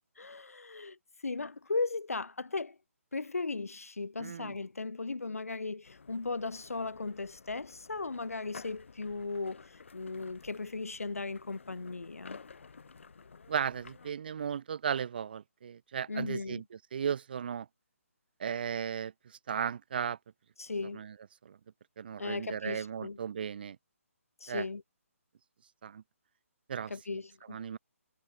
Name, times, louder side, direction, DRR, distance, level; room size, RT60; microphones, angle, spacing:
voice 1, 0.2-1.0 1.2-2.8 3.1-12.4 16.1-16.6 20.6-21.0 22.2-23.2 24.4-24.8 26.9-27.6, left 3 dB, 80° left, 0.4 m, -37 dB
voice 2, 4.2-4.5 13.5-17.7 18.4-19.1 19.5-20.2 20.9-21.1 21.4-21.6 22.0-23.8 24.5-24.7 25.8-26.0 26.7-26.9 27.5-27.8, right 7 dB, 40° right, 0.4 m, -35 dB
sound 1, 5.8-14.1, left 5 dB, 60° left, 1.6 m, -53 dB
figure-of-eight pair, 140°, 8 cm